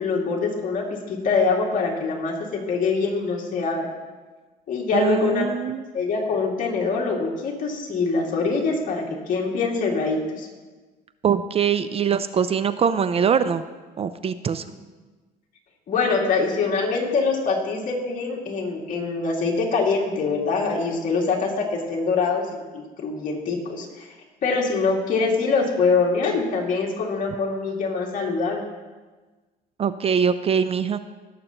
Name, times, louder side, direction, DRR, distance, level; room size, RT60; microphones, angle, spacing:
voice 1, 0.0-3.9 4.7-5.4 5.9-10.5 15.9-24.1 24.4-28.6, left 4 dB, 50° left, -2 dB, 2.2 m, -24 dB
voice 2, 4.9-5.8 11.2-13.6 14.0-14.6 29.8-31.0, right 7 dB, 35° right, 12 dB, 0.4 m, -22 dB
18.5 x 6.7 x 2.9 m, 1.3 s
cardioid pair, 110°, 17 cm